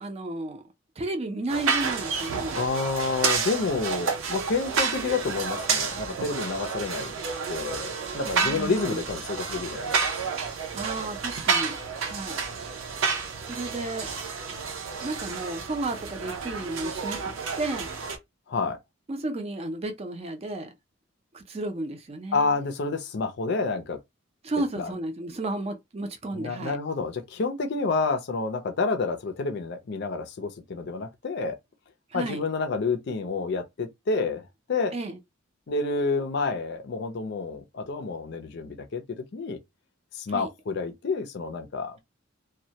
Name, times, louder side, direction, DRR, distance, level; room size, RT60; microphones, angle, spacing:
voice 1, 0.0-0.6 1.0-2.6 8.4-9.0 10.7-11.8 12.1-12.4 13.4-14.1 15.0-17.9 19.1-20.7 21.3-22.6 24.4-26.8 32.1-32.4 34.9-35.2 40.3-40.5, right 2 dB, 30° right, 0.5 m, -33 dB
sound 1, 1.5-18.2, right 5 dB, 80° right, 0.5 m, -30 dB
voice 2, 2.6-7.1 7.5-9.9 18.5-18.8 22.3-24.0 24.7-24.9 26.3-31.6 32.1-34.9 35.7-39.6 40.1-42.0, left 4 dB, 60° left, 0.5 m, -29 dB
2.2 x 2.0 x 2.7 m
head